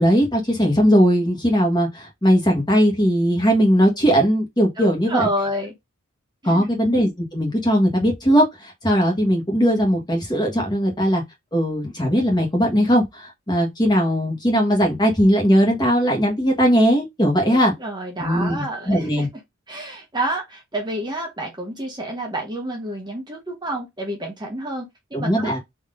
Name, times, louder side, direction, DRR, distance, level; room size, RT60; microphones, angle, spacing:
voice 1, 0.0-5.3 6.4-11.2 11.5-17.7 18.2-19.3 25.1-25.6, equal, 20° left, 1.5 m, -19 dB
voice 2, 4.8-5.7 6.4-6.7 17.5-19.3 19.7-25.6, right 1 dB, 20° right, 1.0 m, -29 dB
3.9 x 3.1 x 3.7 m
head